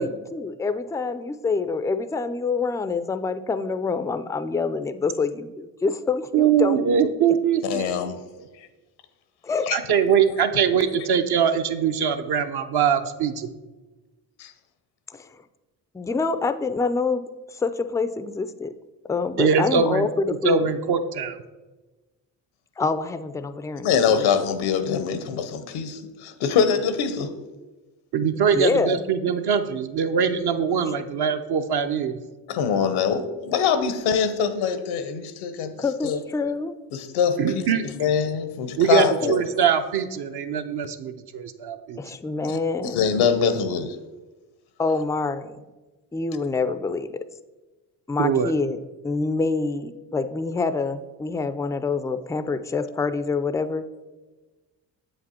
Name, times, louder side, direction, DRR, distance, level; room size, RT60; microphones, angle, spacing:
voice 1, 0.0-7.1 9.4-9.7 15.1-15.3 15.9-18.7 19.1-20.7 22.8-24.3 28.5-29.0 35.8-36.7 39.2-39.3 42.0-43.0 44.8-45.6 46.1-47.2 48.1-53.8, left 4 dB, 10° left, 12 dB, 0.3 m, -26 dB
voice 2, 6.3-8.5 9.7-13.5 19.4-20.1 20.4-21.4 28.1-32.2 37.4-38.1 38.8-42.0 48.2-48.5, right 7 dB, 55° right, 7 dB, 0.8 m, -22 dB
voice 3, 7.6-8.2 9.7-9.8 14.4-14.5 23.8-27.3 32.5-35.7 36.0-36.2 36.9-37.4 37.8-39.4 42.5-42.6 42.8-43.9, left 7 dB, 85° left, 10 dB, 0.8 m, -23 dB
7.6 x 5.1 x 4.3 m, 1.2 s
supercardioid pair, 55°, 47 cm